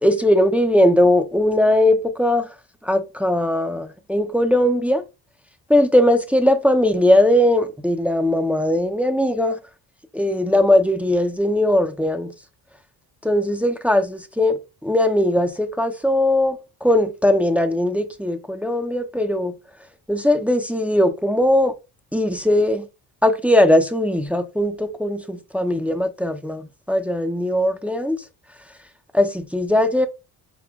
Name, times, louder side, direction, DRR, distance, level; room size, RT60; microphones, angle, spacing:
voice 1, 0.0-2.5 2.8-5.0 5.7-9.6 10.1-12.3 13.2-19.5 20.1-21.7 22.1-22.9 23.2-28.2 29.1-30.1, left 1 dB, 5° right, 0.5 m, -19 dB
6.1 x 2.1 x 3.4 m
cardioid pair, 105°, 40 cm